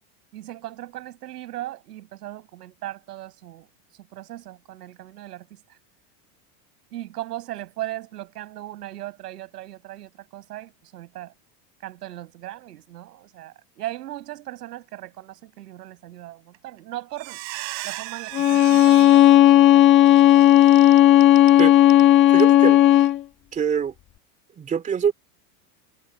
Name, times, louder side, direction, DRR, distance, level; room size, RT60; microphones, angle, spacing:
voice 1, 0.3-3.7 4.0-5.6 6.9-11.3 11.8-17.4 17.8-20.6, right 15 dB, 90° right, 5.5 m, -38 dB
Squeak, 16.5-16.8 17.1-22.1 22.4-22.5 22.9-23.1, right 27 dB, 55° right, 3.3 m, -37 dB
Bowed string instrument, 18.3-23.2, left 13 dB, 25° left, 1.4 m, -14 dB
voice 2, 22.3-22.8 23.5-23.9 24.6-25.1, right 7 dB, 15° right, 2.9 m, -24 dB
supercardioid pair, 160°, 46 cm